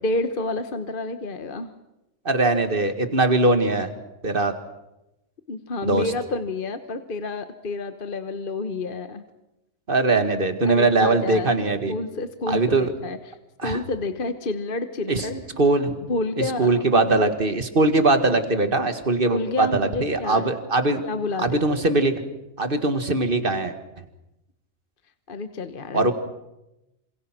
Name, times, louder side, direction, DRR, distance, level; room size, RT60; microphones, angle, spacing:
voice 1, 0.0-1.7 5.5-9.2 10.6-15.5 16.1-17.4 19.3-20.5 21.0-21.9 25.3-26.1, left 2 dB, 40° left, 9 dB, 1.2 m, -29 dB
voice 2, 2.3-3.9 4.2-4.5 5.8-6.1 9.9-11.9 12.5-12.9 13.6-13.8 15.1-15.3 15.6-16.0 16.4-21.1 21.4-22.1 22.6-23.8 25.9-26.1, right 2 dB, 40° right, 8 dB, 2.0 m, -21 dB
27.5 x 27.0 x 6.0 m, 0.93 s
omnidirectional pair, 1.4 m